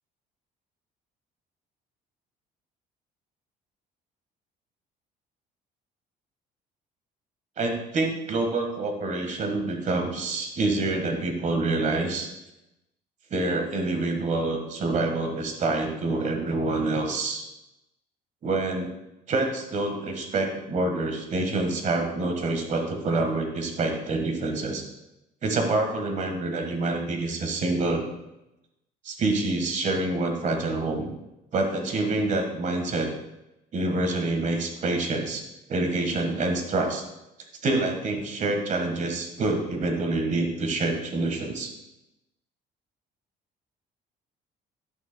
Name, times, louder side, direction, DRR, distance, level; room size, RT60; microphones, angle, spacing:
voice 1, 7.6-12.3 13.3-17.4 18.4-18.9 19.3-24.8 25.4-28.0 29.0-31.1 31.5-33.1 33.7-35.4 35.7-37.0 37.6-41.7, right 2 dB, 45° right, 4 dB, 1.5 m, -27 dB
10.5 x 6.8 x 2.2 m, 0.92 s
cardioid pair, 110°, 17 cm